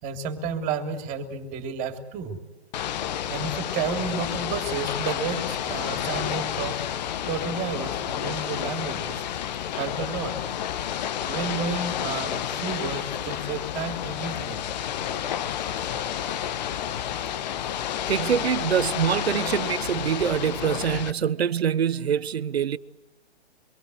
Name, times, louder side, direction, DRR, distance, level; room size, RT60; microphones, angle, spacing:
voice 1, 0.0-2.4 3.3-9.2 9.7-10.3 11.3-14.6, right 5 dB, 25° right, 3.3 m, -31 dB
Ocean / Boat Water vehicle, 2.7-21.1, left 10 dB, 40° left, 1.3 m, -30 dB
voice 2, 18.1-22.8, right 8 dB, 70° right, 1.2 m, -25 dB
26.5 x 22.5 x 8.0 m
hypercardioid pair, 145°, 33 cm